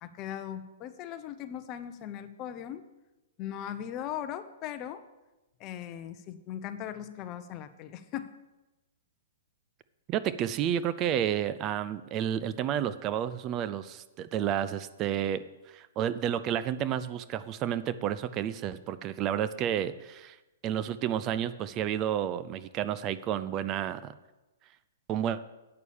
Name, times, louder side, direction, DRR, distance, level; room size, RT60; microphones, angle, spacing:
voice 1, 0.0-2.8 3.4-5.0 5.6-8.3, left 10 dB, 35° left, 11 dB, 0.8 m, -39 dB
voice 2, 10.1-15.4 15.7-20.4 20.6-24.1 25.1-25.4, right 10 dB, 30° right, 14 dB, 0.5 m, -31 dB
8.7 x 6.2 x 7.0 m, 1.1 s
hypercardioid pair, 130°, 0 cm